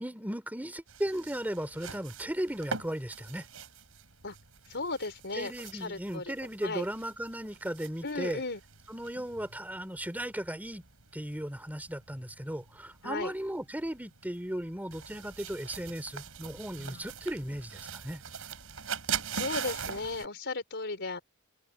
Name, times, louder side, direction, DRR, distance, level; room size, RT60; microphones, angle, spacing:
voice 1, 0.0-3.4 5.3-8.4 8.9-10.8 11.1-18.2, equal, 10° right, 3.4 m, -36 dB
sound 1, 0.9-20.3, right 7 dB, 70° right, 7.3 m, -43 dB
voice 2, 4.7-6.3 6.6-6.8 8.0-8.6 13.0-13.3 16.8-17.0 19.3-21.2, left 3 dB, 55° left, 4.7 m, -35 dB
head